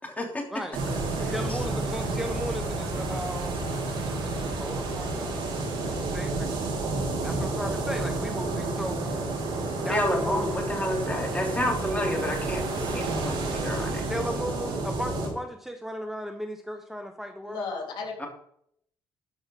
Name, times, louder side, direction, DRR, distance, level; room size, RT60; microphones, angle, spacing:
voice 1, 0.0-0.5 1.2-1.6 9.9-14.0 18.2-18.3, left 1 dB, 15° left, 1 dB, 3.0 m, -30 dB
sound 1, 0.7-15.3, right 2 dB, 75° right, 4.6 m, -30 dB
voice 2, 1.2-6.5 7.2-9.1 9.8-10.4 14.1-17.7, equal, 5° right, 6 dB, 1.1 m, -36 dB
voice 3, 17.4-18.3, left 4 dB, 60° left, 2 dB, 3.2 m, -34 dB
12.5 x 5.2 x 5.2 m, 0.68 s
supercardioid pair, 75°, 9 cm